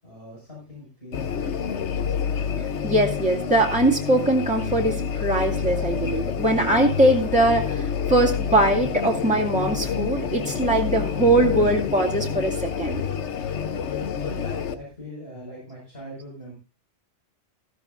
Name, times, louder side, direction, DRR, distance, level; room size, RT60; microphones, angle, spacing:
voice 1, 0.0-1.6 14.1-16.5, left 1 dB, 60° left, -5 dB, 6.2 m, -41 dB
sound 1, 1.1-14.7, left 7 dB, 85° left, 1.2 m, -28 dB
voice 2, 2.6-13.1, right 1 dB, 5° right, -2 dB, 2.4 m, -21 dB
15.5 x 14.5 x 2.6 m, 0.34 s
omnidirectional pair, 1.2 m